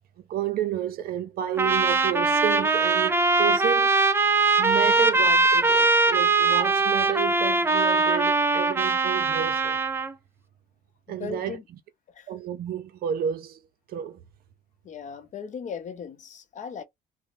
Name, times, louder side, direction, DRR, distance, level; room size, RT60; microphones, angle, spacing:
voice 1, 0.3-4.0 4.6-9.8 11.1-11.6 12.3-13.6 13.9-14.2, right 10 dB, 65° right, 0.5 m, -30 dB
Trumpet, 1.6-10.1, right 3 dB, 15° right, 0.4 m, -21 dB
voice 2, 11.1-11.6 12.2-12.3 14.8-16.8, left 6 dB, 45° left, 0.7 m, -37 dB
2.9 x 2.1 x 2.6 m
cardioid pair, 110°, 17 cm